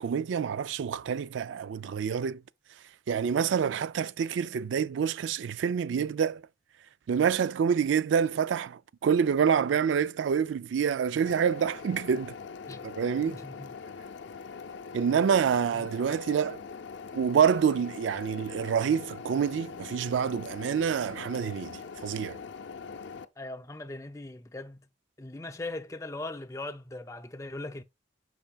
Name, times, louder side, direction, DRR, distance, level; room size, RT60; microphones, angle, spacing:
voice 1, 0.0-2.4 3.1-6.4 7.1-12.3 12.8-13.4 14.9-16.6 17.1-22.4, right 7 dB, 90° right, 0.3 m, -27 dB
sound 1, 11.2-23.2, left 5 dB, 80° left, 0.6 m, -42 dB
voice 2, 13.3-13.8 15.2-15.4 15.7-15.9 23.4-24.9 25.2-27.8, left 2 dB, 15° left, 0.4 m, -40 dB
8.7 x 5.7 x 2.3 m
head